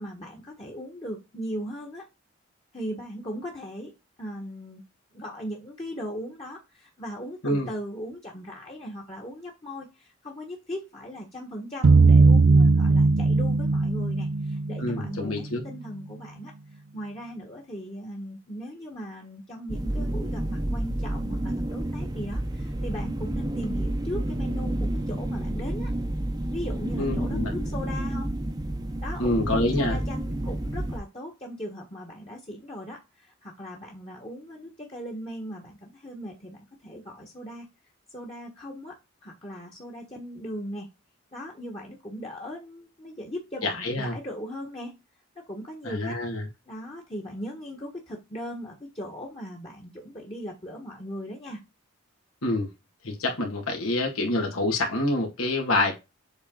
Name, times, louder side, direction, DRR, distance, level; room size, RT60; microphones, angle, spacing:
voice 1, 0.0-2.1 2.7-3.9 4.2-4.8 5.1-25.9 26.5-28.3 29.0-37.7 38.1-39.0 39.2-40.9 41.3-44.9 45.4-46.2 46.7-51.6, equal, 25° left, 1.4 m, -38 dB
sound 1, 11.8-15.6, right 3 dB, 80° right, 0.5 m, -19 dB
voice 2, 14.8-15.6 27.0-27.7 29.2-30.0 43.6-44.1 45.8-46.5 52.4-52.7 53.0-56.0, left 2 dB, 85° left, 2.2 m, -27 dB
sound 2, 19.7-31.0, right 1 dB, 20° right, 0.7 m, -30 dB
7.9 x 3.6 x 3.8 m
head